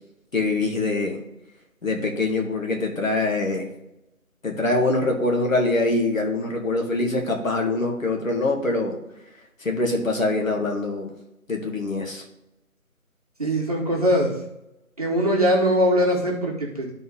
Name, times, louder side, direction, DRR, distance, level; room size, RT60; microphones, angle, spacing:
voice 1, 0.3-1.2 1.8-3.7 4.4-9.0 9.6-11.1 11.5-12.2, left 2 dB, 60° left, 1 dB, 2.1 m, -24 dB
voice 2, 13.4-14.3 15.0-16.9, equal, 25° right, -3 dB, 1.2 m, -21 dB
12.0 x 4.1 x 3.9 m, 0.91 s
figure-of-eight pair, 165°, 44 cm